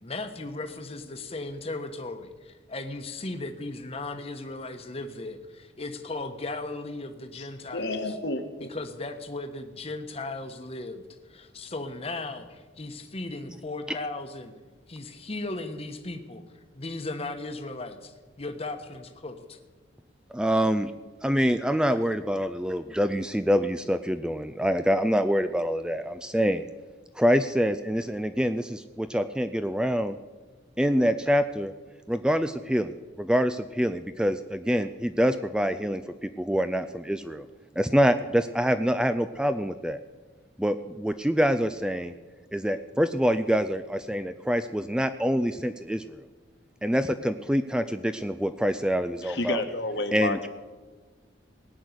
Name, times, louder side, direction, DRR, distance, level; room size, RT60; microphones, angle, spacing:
voice 1, 0.0-8.1 8.7-11.0 11.3-14.5 14.9-16.4 16.8-19.6, left 2 dB, 30° left, 7 dB, 1.1 m, -36 dB
voice 2, 7.7-8.7 21.9-22.0 49.2-50.5, left 2 dB, 60° left, 7 dB, 1.4 m, -30 dB
voice 3, 20.3-20.9 21.2-26.7 27.2-30.2 30.8-31.7 32.1-37.5 37.8-40.0 40.6-42.1 42.5-46.2 46.8-49.6 50.1-50.4, equal, 5° right, 10 dB, 0.4 m, -25 dB
18.0 x 6.4 x 9.5 m, 1.3 s
head